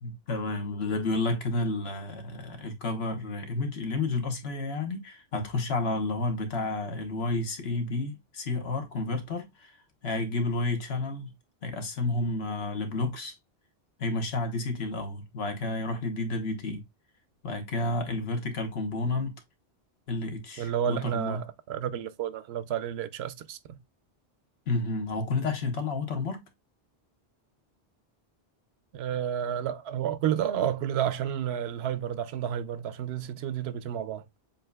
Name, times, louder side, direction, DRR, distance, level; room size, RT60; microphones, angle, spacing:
voice 1, 0.0-9.7 10.0-11.3 11.6-13.4 14.0-16.8 17.4-19.3 20.1-21.4 24.7-26.4, left 2 dB, 80° left, 1.3 m, -31 dB
voice 2, 20.6-23.8 28.9-34.2, right 9 dB, 85° right, 0.8 m, -31 dB
7.2 x 2.7 x 2.2 m
omnidirectional pair, 1.0 m